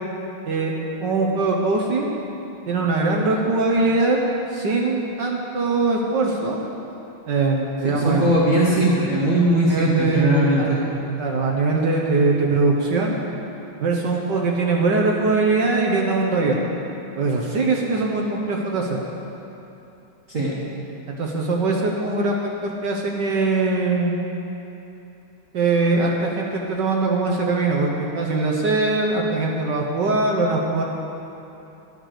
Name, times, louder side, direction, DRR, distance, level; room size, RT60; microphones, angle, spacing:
voice 1, 1.0-2.1 2.7-4.2 4.5-6.6 7.3-8.3 9.7-10.7 11.2-13.2 13.8-16.5 17.2-19.0 21.1-24.1 25.5-30.8, right 3 dB, 65° right, -1 dB, 1.6 m, -21 dB
voice 2, 7.8-10.8 20.3-20.5, right 1 dB, 40° right, -7 dB, 1.9 m, -20 dB
13.0 x 9.1 x 6.6 m, 3.0 s
omnidirectional pair, 2.2 m